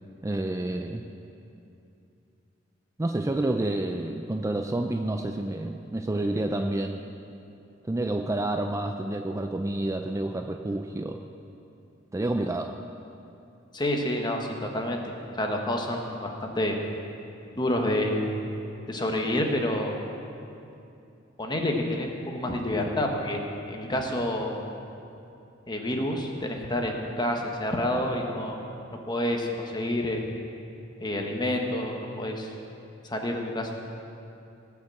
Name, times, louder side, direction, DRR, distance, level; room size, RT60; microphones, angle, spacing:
voice 1, 0.2-1.0 3.0-7.0 7.9-11.2 12.1-12.8, right 1 dB, 15° right, 5 dB, 0.4 m, -29 dB
voice 2, 13.7-16.8 17.5-18.2 18.9-20.0 21.4-24.6 25.7-28.7 29.1-30.2 31.0-32.5 33.0-33.7, left 1 dB, 25° left, 2 dB, 1.3 m, -28 dB
17.5 x 5.9 x 7.7 m, 2.7 s
head